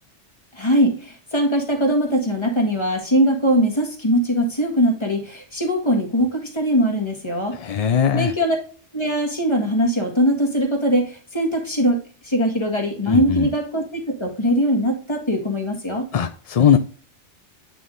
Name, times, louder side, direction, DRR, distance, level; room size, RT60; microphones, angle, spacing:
voice 1, 0.5-7.6 8.1-8.6 8.9-12.0 12.2-16.1, equal, 25° left, 1 dB, 1.8 m, -21 dB
voice 2, 7.5-8.3 13.1-13.5 16.1-16.8, left 8 dB, 55° left, 7 dB, 0.4 m, -19 dB
8.9 x 3.8 x 3.8 m, 0.40 s
omnidirectional pair, 1.2 m